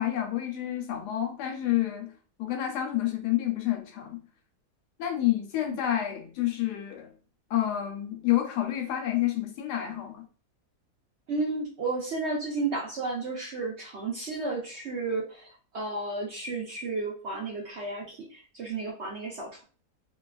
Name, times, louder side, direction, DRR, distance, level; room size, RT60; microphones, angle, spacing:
voice 1, 0.0-2.1 2.4-4.2 5.0-7.1 7.5-10.3, left 13 dB, 80° left, 1.2 m, -29 dB
voice 2, 11.3-19.6, right 3 dB, 60° right, 0.7 m, -33 dB
2.8 x 2.3 x 2.3 m
omnidirectional pair, 1.7 m